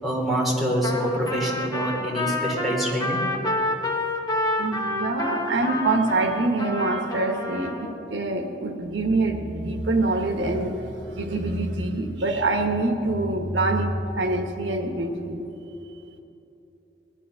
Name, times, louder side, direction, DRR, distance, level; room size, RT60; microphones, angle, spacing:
voice 1, 0.0-3.2, equal, ahead, -4 dB, 3.1 m, -25 dB
Trumpet, 0.8-7.9, left 1 dB, 20° left, 1.3 m, -28 dB
voice 2, 4.6-15.4, right 2 dB, 80° right, 4 dB, 1.3 m, -25 dB
19.5 x 12.5 x 5.7 m, 2.9 s
head